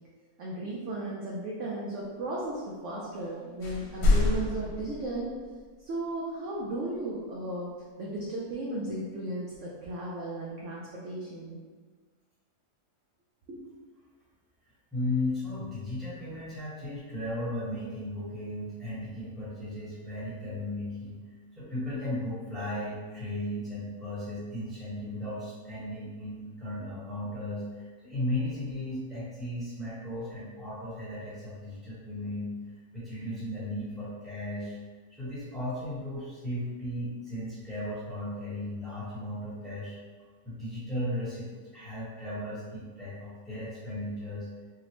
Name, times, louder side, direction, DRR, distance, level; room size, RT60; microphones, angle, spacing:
voice 1, 0.4-5.3 5.8-11.6 13.5-13.6, right 2 dB, 70° right, -5 dB, 0.7 m, -35 dB
sound 1, 3.1-3.3 3.6-5.7, left 2 dB, 75° left, 1.2 m, -27 dB
voice 2, 14.9-32.5 32.9-34.8 35.1-40.0 40.4-44.5, left 1 dB, ahead, -10 dB, 1.0 m, -36 dB
3.9 x 2.1 x 2.9 m, 1.4 s
omnidirectional pair, 1.7 m